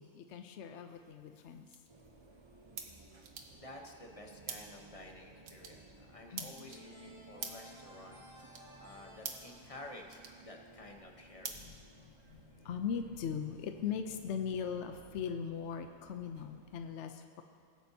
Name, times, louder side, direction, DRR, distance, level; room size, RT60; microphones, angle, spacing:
voice 1, 0.0-1.7 6.3-6.5 11.5-11.7 11.9-17.4, left 7 dB, 65° left, 7 dB, 0.8 m, -40 dB
sound 1, 0.9-12.4, right 6 dB, 70° right, 1.3 m, -50 dB
sound 2, 1.9-16.9, right 2 dB, 25° right, 0.6 m, -59 dB
voice 2, 3.5-8.2 8.5-11.7, left 1 dB, 30° left, 2 dB, 0.9 m, -52 dB
sound 3, 6.7-11.3, equal, 85° left, 3.9 m, -58 dB
21.0 x 8.6 x 2.8 m, 2.3 s
omnidirectional pair, 1.5 m